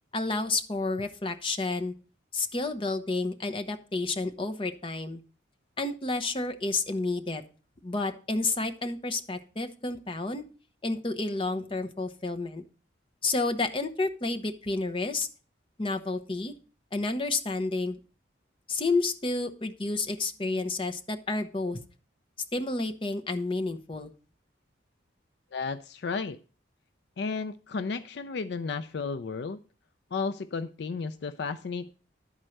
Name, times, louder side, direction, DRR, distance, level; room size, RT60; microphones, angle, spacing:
voice 1, 0.1-1.9 2.3-5.2 5.8-7.4 7.8-10.4 10.8-12.6 13.2-15.3 15.8-16.5 16.9-18.0 18.7-21.8 22.5-24.1, left 3 dB, 25° left, 7 dB, 0.7 m, -30 dB
voice 2, 25.5-26.4 27.2-29.6 30.1-31.9, left 4 dB, 60° left, 12 dB, 0.4 m, -33 dB
11.0 x 4.4 x 6.4 m, 0.38 s
head